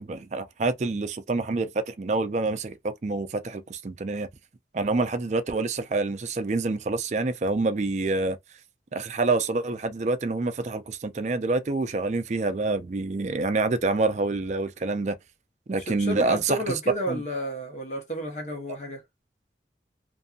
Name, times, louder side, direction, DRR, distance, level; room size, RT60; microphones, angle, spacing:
voice 1, 0.0-2.8 3.0-4.3 4.7-8.4 8.9-15.2 15.7-16.6 17.1-17.2, right 3 dB, 40° right, 0.4 m, -27 dB
voice 2, 15.9-19.0, right 1 dB, 40° left, 0.9 m, -31 dB
2.6 x 2.6 x 2.4 m
head